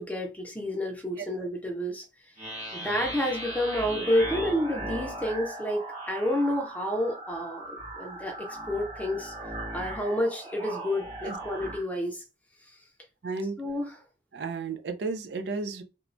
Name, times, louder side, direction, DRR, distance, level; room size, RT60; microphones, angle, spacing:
voice 1, 0.0-2.0 2.7-9.3 9.7-12.2 13.6-14.0, left 1 dB, 10° left, 0.5 m, -29 dB
sound 1, 2.4-11.8, right 1 dB, 40° right, 1.2 m, -38 dB
voice 2, 13.2-13.6 14.3-15.8, right 4 dB, 65° right, 0.5 m, -33 dB
3.0 x 2.1 x 2.6 m
head